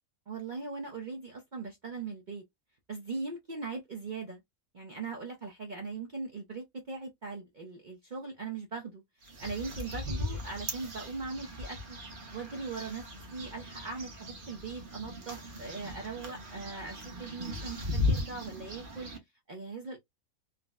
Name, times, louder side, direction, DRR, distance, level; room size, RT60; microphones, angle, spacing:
voice 1, 0.3-2.4 2.9-4.4 4.7-12.0 12.3-19.1 19.5-20.0, right 4 dB, 80° right, 0.4 m, -40 dB
sound 1, 9.2-19.2, left 2 dB, 45° right, 0.7 m, -37 dB
3.9 x 2.0 x 2.3 m
omnidirectional pair, 1.7 m